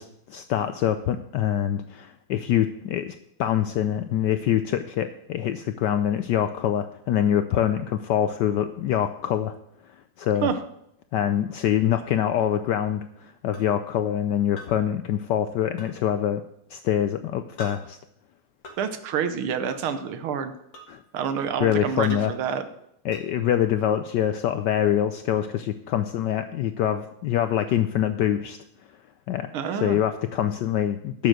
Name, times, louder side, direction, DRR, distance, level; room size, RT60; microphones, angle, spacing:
voice 1, 0.0-3.1 3.4-9.5 9.9-10.5 11.1-16.4 16.7-18.0 20.9-21.0 21.6-22.3 23.0-28.6 29.3-31.3, left 10 dB, 75° left, 10 dB, 1.0 m, -25 dB
sound 1, 13.5-13.7 14.6-14.7 15.8-15.9 17.6-17.8 18.6-18.8 19.7-19.9 20.7-20.9 22.0-22.3 23.1-23.2, left 1 dB, 60° left, 2.4 m, -42 dB
voice 2, 18.8-20.5 21.1-22.7 29.5-30.0, right 7 dB, 80° right, 10 dB, 1.7 m, -28 dB
11.0 x 7.0 x 6.5 m, 0.77 s
omnidirectional pair, 2.3 m